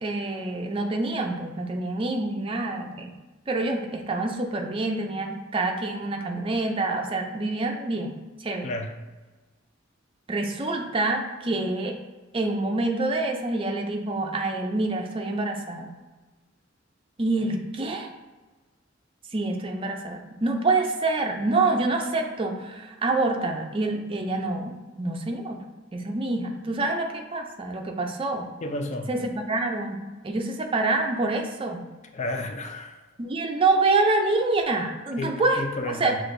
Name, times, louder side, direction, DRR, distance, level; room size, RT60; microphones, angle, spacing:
voice 1, 0.0-3.1 3.5-8.1 8.4-8.7 10.3-12.0 12.3-15.9 17.2-18.1 19.3-25.6 25.9-28.5 29.1-30.0 30.2-31.8 33.2-36.2, right 2 dB, 25° right, 3 dB, 0.5 m, -26 dB
voice 2, 8.6-8.9 28.6-29.1 32.1-33.0 35.2-36.2, left 1 dB, 35° left, 4 dB, 0.4 m, -32 dB
6.2 x 2.5 x 2.6 m, 1.2 s
head